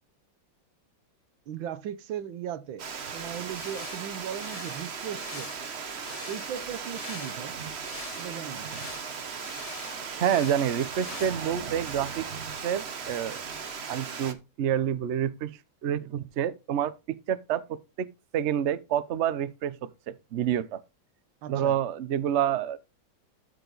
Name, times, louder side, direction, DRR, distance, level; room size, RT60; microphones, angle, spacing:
voice 1, 1.5-2.9 3.1-5.5 6.3-7.5 8.2-8.8 21.4-21.8, right 9 dB, 85° right, 1.6 m, -37 dB
Water, 2.8-14.3, right 6 dB, 40° right, 1.0 m, -37 dB
sound 1, 3.3-11.3, left 4 dB, 40° left, 0.5 m, -45 dB
voice 2, 10.2-12.3 12.6-13.4 13.9-18.1 18.3-19.8 20.1-20.8 21.5-22.8, right 9 dB, 60° right, 0.7 m, -28 dB
13.0 x 4.8 x 3.9 m
omnidirectional pair, 2.1 m